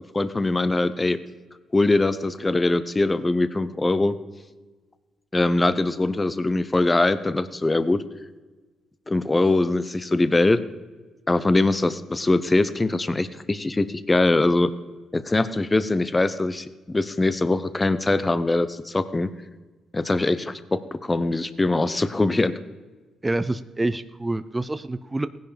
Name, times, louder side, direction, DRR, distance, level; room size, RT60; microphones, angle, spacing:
voice 1, 0.1-1.2 1.7-4.2 5.3-8.0 9.1-10.6 11.3-14.7 15.1-19.3 19.9-22.5, left 2 dB, 20° left, 13 dB, 0.8 m, -22 dB
voice 2, 23.2-25.3, right 2 dB, 15° right, 12 dB, 0.6 m, -27 dB
17.0 x 10.5 x 5.1 m, 1.3 s
cardioid pair, 90°, 0 cm